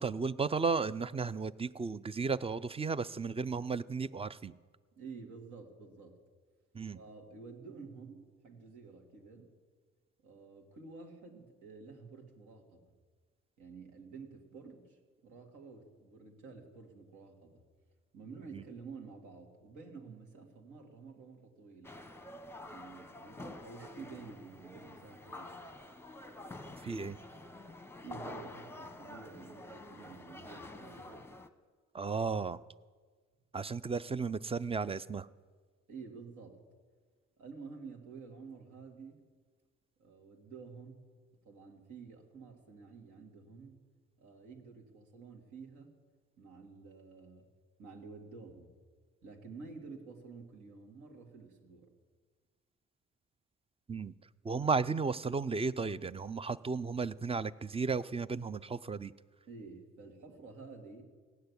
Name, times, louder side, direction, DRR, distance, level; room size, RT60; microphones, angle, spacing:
voice 1, 0.0-4.5 6.7-7.0 18.5-18.6 26.8-27.2 31.9-32.6 33.5-35.3 53.9-54.1 54.4-59.1, right 4 dB, 20° right, 17 dB, 0.4 m, -34 dB
voice 2, 5.0-6.2 6.9-9.5 10.2-12.9 13.6-17.6 18.1-21.9 22.6-25.6 28.0-31.2 35.9-36.6 37.4-39.3 40.0-41.1 41.4-43.9 44.2-46.0 46.4-47.5 47.8-48.7 49.2-51.9 59.5-61.0, right 4 dB, 75° right, 2 dB, 2.5 m, -50 dB
sound 1, 21.8-31.5, left 2 dB, 10° left, 0.9 m, -48 dB
16.0 x 6.7 x 9.6 m, 1.5 s
cardioid pair, 90°, 30 cm